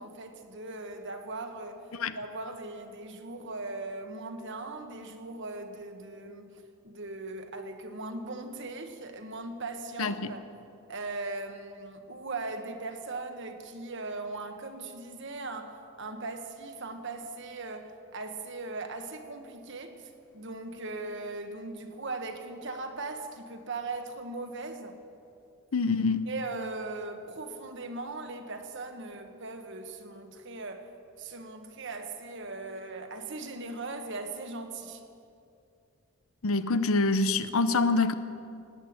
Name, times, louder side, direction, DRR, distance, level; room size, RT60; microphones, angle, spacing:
voice 1, 0.0-1.8 2.1-10.4 10.9-25.0 26.3-30.9 31.2-35.0, right 3 dB, 55° right, 6 dB, 1.3 m, -39 dB
voice 2, 10.0-10.3 25.7-26.3 36.4-38.1, left 3 dB, 70° left, 12 dB, 0.7 m, -26 dB
19.0 x 8.5 x 8.8 m, 2.6 s
head